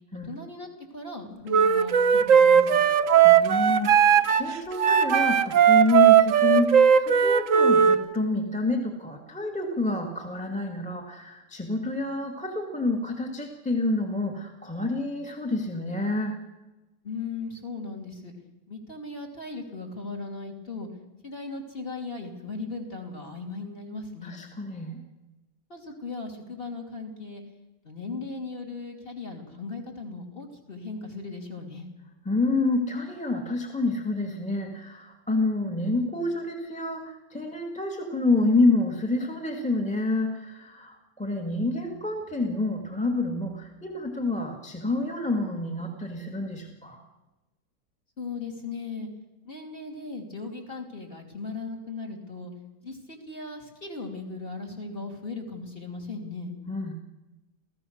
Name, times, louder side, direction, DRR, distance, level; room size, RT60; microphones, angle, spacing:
voice 1, 0.2-2.8 17.0-18.3 18.7-20.9 21.2-24.4 25.7-27.4 27.8-31.9 48.2-49.1 49.4-52.5 52.8-56.5, left 3 dB, 25° left, 1 dB, 3.3 m, -37 dB
Wind instrument woodwind instrument, 1.5-8.0, right 8 dB, 55° right, 0.9 m, -18 dB
voice 2, 3.2-16.4 24.2-25.0 32.2-47.0 56.7-56.9, left 2 dB, 5° left, 2 dB, 1.8 m, -28 dB
28.5 x 16.0 x 6.5 m, 1.1 s
omnidirectional pair, 2.3 m